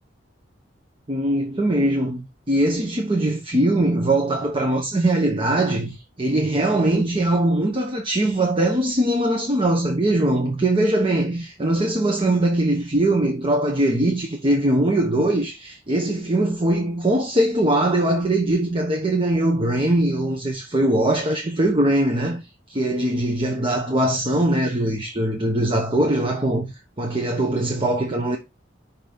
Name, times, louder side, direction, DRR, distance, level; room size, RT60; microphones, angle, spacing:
voice 1, 1.1-22.4 22.7-26.7 27.0-28.4, right 1 dB, 30° right, 0.9 m, -21 dB
5.8 x 4.0 x 5.1 m
head